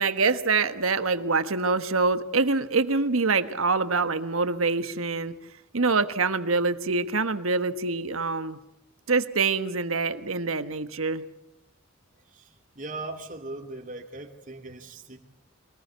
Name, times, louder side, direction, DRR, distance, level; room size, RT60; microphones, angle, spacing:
voice 1, 0.0-5.3 5.7-8.6 9.1-11.2, right 4 dB, 85° right, 11 dB, 1.3 m, -25 dB
voice 2, 12.1-15.2, right 2 dB, 40° right, 2 dB, 2.5 m, -39 dB
24.0 x 19.5 x 8.1 m, 0.85 s
head